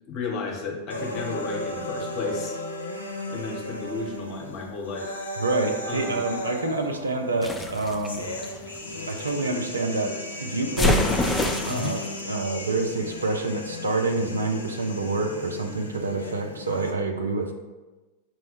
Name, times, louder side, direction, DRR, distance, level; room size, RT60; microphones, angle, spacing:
voice 1, 0.1-2.6 3.3-5.1 5.8-6.3 11.7-12.0, left 4 dB, 40° left, 0 dB, 0.9 m, -33 dB
sound 1, 0.9-16.9, left 1 dB, 80° left, 0.4 m, -35 dB
voice 2, 5.4-8.2 9.1-11.0 11.6-17.5, right 3 dB, 75° right, 4 dB, 0.4 m, -27 dB
sound 2, 7.4-9.3 10.8-12.1, left 2 dB, 10° left, 0.4 m, -26 dB
4.4 x 2.1 x 4.3 m, 1.2 s
figure-of-eight pair, 90°, 0 cm